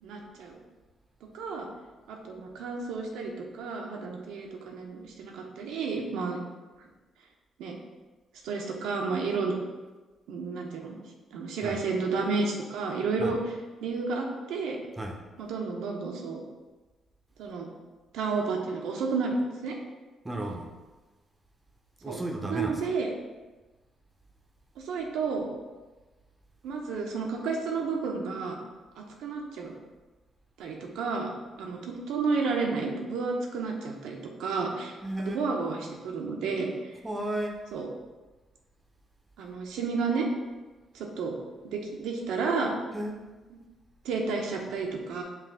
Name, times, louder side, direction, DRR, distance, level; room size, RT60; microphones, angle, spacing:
voice 1, 0.0-0.6 1.3-1.7 2.1-6.4 7.6-7.8 8.4-9.6 10.3-11.0 11.3-13.5 13.8-14.8 15.4-16.4 17.4-17.7 18.1-19.4 19.6-19.8 22.1-22.2 22.5-23.1 24.8-25.5 26.6-28.6 28.9-29.7 30.6-31.3 31.6-36.9 37.7-37.9 39.4-40.3 40.9-41.3 41.7-42.7 44.0-45.2, right 4 dB, 85° right, 1 dB, 0.7 m, -31 dB
voice 2, 20.2-20.7 22.0-22.8 35.0-35.4 37.0-37.6 42.9-43.2, right 1 dB, 20° right, 2 dB, 0.6 m, -33 dB
5.6 x 2.4 x 3.7 m, 1.2 s
cardioid pair, 90°, 0 cm